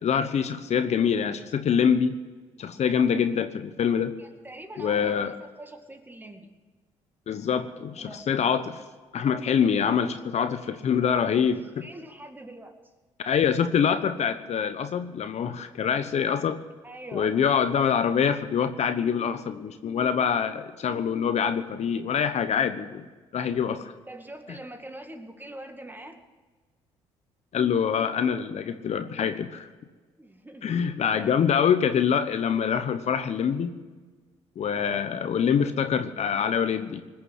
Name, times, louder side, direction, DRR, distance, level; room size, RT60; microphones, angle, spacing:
voice 1, 0.0-2.1 2.6-4.1 4.8-5.3 7.3-8.8 9.1-11.8 13.3-16.6 17.1-23.0 23.3-23.9 27.5-29.7 30.6-33.7 34.6-37.0, left 7 dB, 55° left, 9 dB, 1.0 m, -25 dB
voice 2, 4.2-6.5 8.0-8.2 11.2-12.7 16.8-17.3 24.1-26.2 30.2-31.3, right 1 dB, 15° right, 5 dB, 2.2 m, -43 dB
19.5 x 7.0 x 9.0 m, 1.3 s
hypercardioid pair, 60°, 14 cm